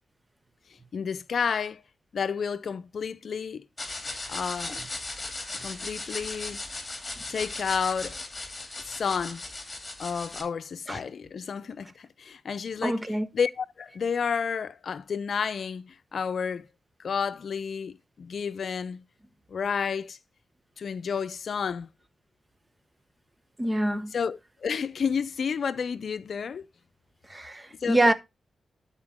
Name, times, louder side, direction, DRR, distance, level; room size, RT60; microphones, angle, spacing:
voice 1, 0.9-1.8 2.1-3.6 4.3-4.8 5.6-6.6 7.3-8.2 8.8-9.4 10.0-16.7 17.0-19.0 19.5-20.2 20.8-21.9 24.1-26.7 27.8-28.1, left 6 dB, 65° left, 0.6 m, -31 dB
sound 1, 3.8-10.4, left 2 dB, 30° left, 2.7 m, -37 dB
voice 2, 12.8-13.3 23.6-24.1 27.3-28.1, right 1 dB, 20° right, 0.9 m, -25 dB
12.0 x 4.5 x 3.6 m
cardioid pair, 65°, 0 cm